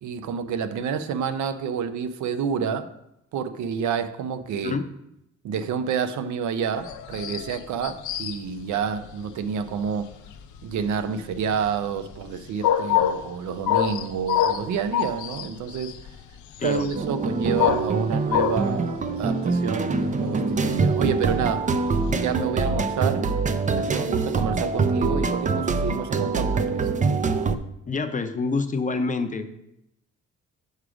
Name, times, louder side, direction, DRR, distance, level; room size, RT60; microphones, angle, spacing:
voice 1, 0.0-2.9 3.3-4.8 5.4-10.1 10.6-15.9 16.6-21.7 22.1-23.3 23.7-26.9, right 6 dB, 70° right, 11 dB, 0.6 m, -29 dB
sound 1, 6.8-22.4, left 10 dB, 75° left, 0.6 m, -27 dB
voice 2, 16.6-16.9 27.9-29.5, left 4 dB, 25° left, 7 dB, 0.6 m, -27 dB
sound 2, 16.9-27.6, right 4 dB, 25° right, 0.4 m, -24 dB
6.4 x 4.9 x 4.9 m, 0.82 s
cardioid pair, 90°, 30 cm